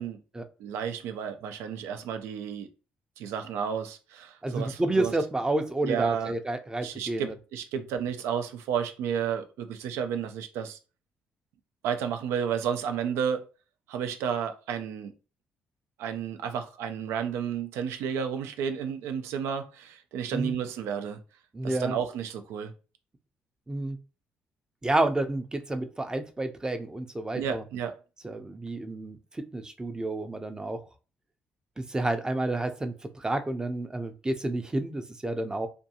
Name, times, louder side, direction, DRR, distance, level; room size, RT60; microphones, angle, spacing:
voice 1, 0.6-2.7 3.2-5.1 5.8-6.3 6.8-10.8 11.8-13.5 13.9-15.1 16.0-21.2 21.6-22.7 27.3-27.9, right 8 dB, 90° right, 0.4 m, -32 dB
voice 2, 4.4-7.3 20.3-20.6 21.5-22.0 23.7-24.0 24.8-27.6 28.2-29.2 29.5-30.8 31.8-35.7, right 2 dB, 15° right, 0.5 m, -30 dB
2.5 x 2.2 x 2.7 m
cardioid pair, 80°, 4 cm